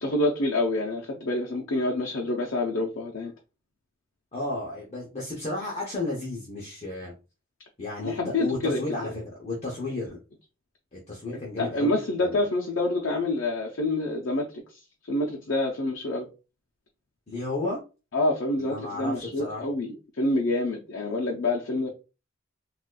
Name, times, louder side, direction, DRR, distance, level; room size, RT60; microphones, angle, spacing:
voice 1, 0.0-3.3 8.0-8.8 11.6-14.8 15.1-16.3 18.1-21.9, left 2 dB, 75° left, 0.6 m, -27 dB
voice 2, 4.3-7.1 7.8-10.2 10.9-12.4 17.3-17.8 18.6-19.6, left 2 dB, 35° left, 0.8 m, -33 dB
4.0 x 2.4 x 2.2 m
head